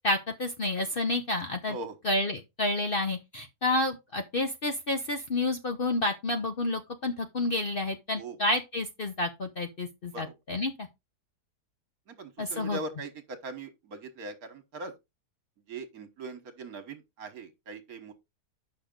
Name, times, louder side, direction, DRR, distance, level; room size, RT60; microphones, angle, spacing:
voice 1, 0.0-1.8 2.0-10.9 12.4-12.8, left 2 dB, 45° left, 0.8 m, -30 dB
voice 2, 12.1-14.9 15.7-18.1, right 3 dB, 65° right, 1.7 m, -40 dB
7.9 x 5.8 x 3.7 m
omnidirectional pair, 1.7 m